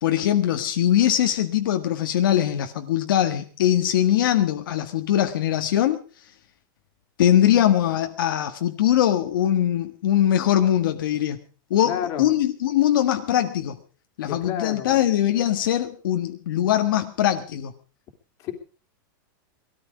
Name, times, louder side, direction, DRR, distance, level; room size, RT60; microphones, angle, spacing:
voice 1, 0.0-6.0 7.2-11.4 11.7-13.8 14.2-17.7, left 11 dB, 70° left, 6 dB, 1.6 m, -21 dB
voice 2, 11.8-12.3 14.3-15.0 18.4-18.5, left 9 dB, 30° left, 5 dB, 2.6 m, -30 dB
20.0 x 13.5 x 4.9 m, 0.37 s
supercardioid pair, 180°, 12 cm